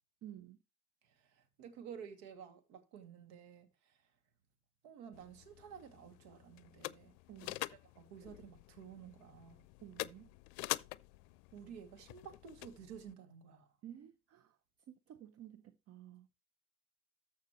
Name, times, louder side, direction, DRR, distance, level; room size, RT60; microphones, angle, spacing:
voice 1, 0.2-0.6 7.3-7.6 9.8-10.4 13.8-14.6 14.9-16.3, right 11 dB, 35° right, 0.7 m, -53 dB
voice 2, 1.0-4.0 4.8-7.1 7.5-7.6 7.9-9.6 11.5-13.7, right 7 dB, 60° right, 2.5 m, -52 dB
sound 1, 5.1-13.1, left 20 dB, 60° left, 0.6 m, -46 dB
14.0 x 5.7 x 3.1 m
hypercardioid pair, 80°, 44 cm